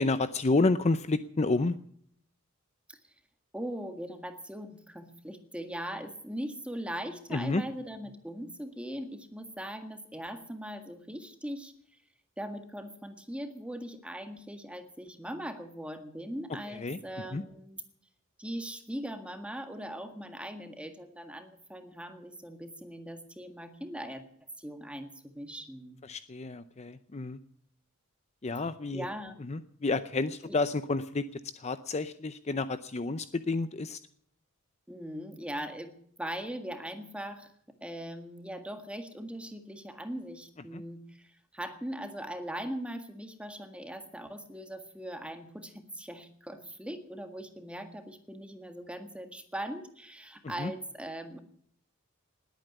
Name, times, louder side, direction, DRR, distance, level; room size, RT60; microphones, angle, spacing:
voice 1, 0.0-1.8 7.3-7.6 16.7-17.0 17.3-17.4 26.1-27.4 28.4-29.1 29.4-34.0 40.7-40.8 50.4-50.7, left 3 dB, 30° left, 12 dB, 0.6 m, -30 dB
voice 2, 3.5-11.7 12.4-17.8 18.4-24.2 24.6-26.0 28.9-29.4 30.5-30.6 34.9-37.5 37.8-51.4, equal, 5° right, 6 dB, 1.8 m, -40 dB
20.0 x 8.9 x 8.1 m, 0.64 s
head